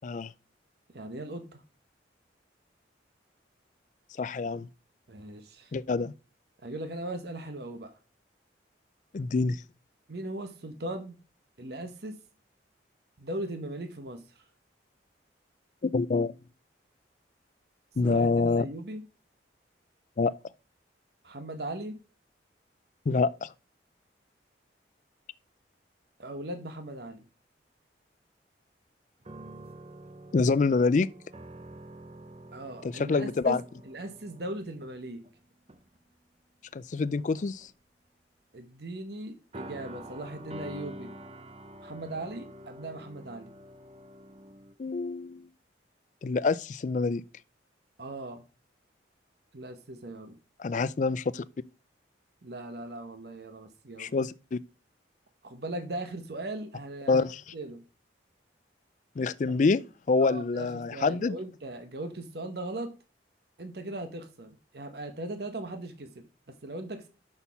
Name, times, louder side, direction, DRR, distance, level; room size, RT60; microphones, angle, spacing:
voice 1, 0.9-1.6 5.1-5.7 6.6-7.9 10.1-11.2 11.6-12.2 13.2-14.4 18.0-19.0 21.2-22.0 26.2-27.3 32.5-35.2 38.5-41.1 41.8-43.6 48.0-48.4 49.5-50.4 52.4-54.1 55.4-57.3 57.5-57.8 60.2-62.9 63.6-66.1 66.5-67.1, right 1 dB, 55° right, 1.0 m, -39 dB
voice 2, 4.2-4.7 5.7-6.1 9.1-9.6 15.8-16.3 18.0-18.7 20.2-20.3 23.1-23.5 30.3-31.1 32.8-33.6 36.7-37.7 44.8-45.5 46.2-47.2 50.6-51.4 54.0-54.6 57.1-57.4 59.2-61.4, left 4 dB, 40° left, 0.3 m, -26 dB
sound 1, 29.2-35.3 35.7-36.0 36.9-37.7 39.5-44.7, right 1 dB, 30° right, 0.6 m, -47 dB
6.2 x 5.5 x 5.7 m
head